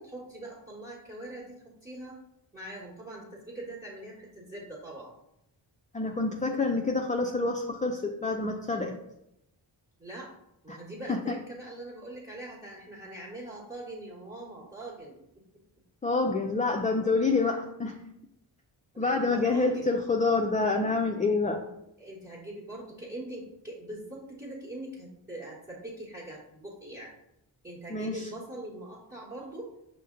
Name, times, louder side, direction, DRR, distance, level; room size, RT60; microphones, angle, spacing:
voice 1, 0.0-2.2 2.5-5.1 10.0-10.3 10.6-15.2 17.4-17.5 18.9-19.9 22.0-27.1 27.6-29.7, right 1 dB, 20° right, -5 dB, 1.3 m, -42 dB
voice 2, 5.9-8.9 10.7-10.8 11.1-11.4 16.0-17.9 19.0-21.6 27.9-28.2, left 3 dB, 20° left, 3 dB, 0.4 m, -27 dB
5.3 x 2.1 x 3.7 m, 0.83 s
cardioid pair, 40°, 48 cm